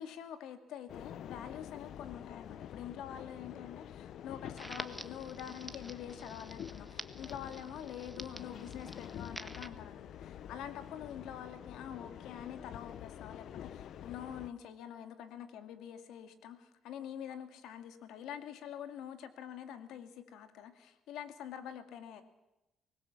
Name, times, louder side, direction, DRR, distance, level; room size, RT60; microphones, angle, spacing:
voice 1, 0.0-22.2, left 9 dB, 90° left, 8 dB, 2.2 m, -46 dB
sound 1, 0.9-14.5, left 10 dB, 75° left, 0.9 m, -47 dB
Crackle, 4.6-9.7, right 1 dB, 5° right, 1.5 m, -48 dB
24.0 x 20.0 x 7.2 m, 0.99 s
cardioid pair, 90°, 0 cm